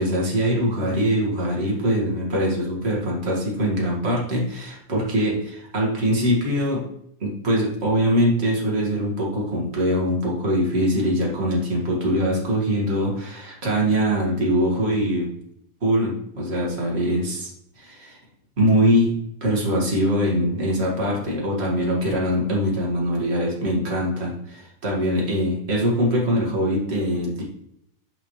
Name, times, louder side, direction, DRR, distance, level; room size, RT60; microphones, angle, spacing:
voice 1, 0.0-6.8 7.2-15.3 15.8-17.5 17.8-18.2 18.6-19.1 19.4-27.4, equal, 25° right, -3 dB, 1.5 m, -22 dB
7.1 x 5.6 x 3.2 m, 0.75 s
omnidirectional pair, 3.5 m